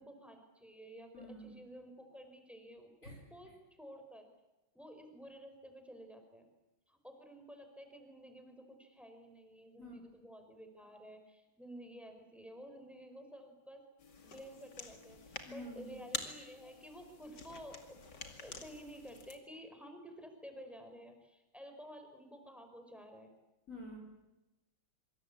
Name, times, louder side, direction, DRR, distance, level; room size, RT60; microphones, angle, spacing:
voice 1, 0.0-3.5 3.8-4.3 4.7-6.5 6.9-13.8 14.2-18.0 18.4-23.3, equal, ahead, 6 dB, 4.5 m, -52 dB
voice 2, 1.1-1.5 3.0-3.2 9.8-9.9 15.4-16.0 23.7-24.0, equal, 40° left, 1 dB, 5.1 m, -48 dB
sound 1, 14.0-19.4, left 4 dB, 55° left, 3.0 m, -48 dB
25.5 x 25.0 x 8.5 m, 1.0 s
omnidirectional pair, 2.2 m